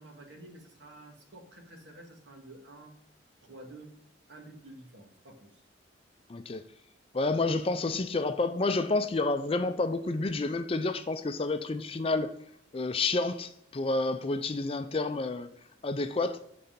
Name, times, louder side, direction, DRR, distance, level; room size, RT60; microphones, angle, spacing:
voice 1, 0.0-2.9 3.4-3.9 4.3-5.6 7.9-8.1, right 1 dB, 75° right, 1.8 m, -50 dB
voice 2, 6.3-6.6 7.1-12.3 12.7-15.5 15.8-16.4, left 3 dB, 30° left, 0.4 m, -29 dB
8.0 x 4.2 x 5.1 m
head